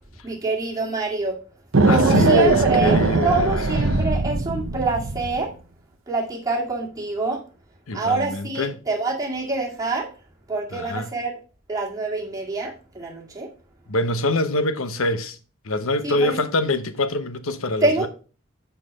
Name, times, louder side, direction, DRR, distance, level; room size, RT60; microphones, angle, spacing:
voice 1, 0.2-1.4 1.9-5.5 6.1-7.4 7.9-10.1 10.5-11.3 11.7-13.5 16.0-16.4 17.8-18.1, right 3 dB, 15° right, 2.1 m, -26 dB
sound 1, 1.7-5.4, right 3 dB, 70° right, 0.8 m, -20 dB
voice 2, 1.9-3.6 3.9-4.0 7.9-8.8 10.7-11.1 13.9-15.4 15.6-18.1, left 2 dB, 85° left, 0.9 m, -24 dB
6.4 x 5.6 x 5.2 m
head